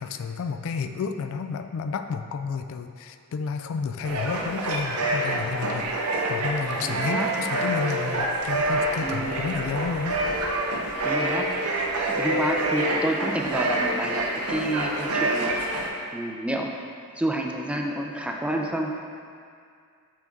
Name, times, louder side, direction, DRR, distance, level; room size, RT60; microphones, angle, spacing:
voice 1, 0.0-10.2, left 5 dB, 65° left, 8 dB, 0.3 m, -31 dB
sound 1, 4.0-15.9, right 1 dB, 85° right, 0.7 m, -27 dB
voice 2, 6.8-7.3 9.0-9.4 11.0-11.5 12.1-15.6 16.1-16.7 17.2-18.9, right 1 dB, 5° right, 0 dB, 0.4 m, -29 dB
6.0 x 5.8 x 3.6 m, 2.2 s
head